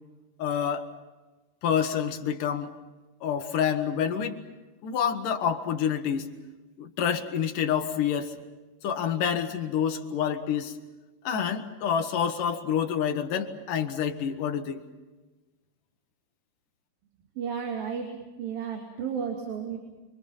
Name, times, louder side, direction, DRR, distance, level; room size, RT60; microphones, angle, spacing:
voice 1, 0.4-0.9 1.6-2.7 3.2-4.4 4.8-6.3 6.8-8.3 8.8-10.8 11.2-14.8, left 8 dB, 70° left, 5 dB, 3.2 m, -28 dB
voice 2, 17.4-19.8, right 7 dB, 85° right, 2 dB, 4.4 m, -33 dB
28.5 x 25.0 x 5.8 m, 1.2 s
omnidirectional pair, 4.0 m